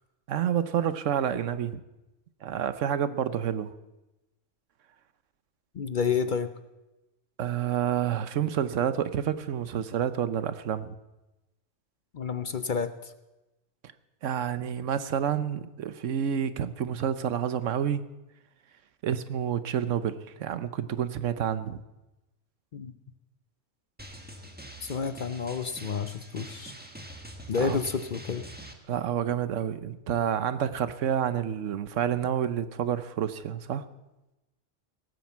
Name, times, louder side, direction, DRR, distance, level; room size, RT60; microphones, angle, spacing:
voice 1, 0.3-1.8 2.4-3.7 7.4-10.9 14.2-18.0 19.0-21.8 27.6-27.8 28.9-33.8, right 9 dB, 80° right, 13 dB, 1.1 m, -29 dB
voice 2, 5.7-6.5 12.1-13.1 22.7-22.9 24.8-26.7 27.5-28.4, left 6 dB, 50° left, 10 dB, 0.7 m, -30 dB
Drum, 24.0-28.7, equal, 10° right, 1.4 m, -44 dB
18.0 x 9.2 x 7.3 m, 1.0 s
omnidirectional pair, 1.3 m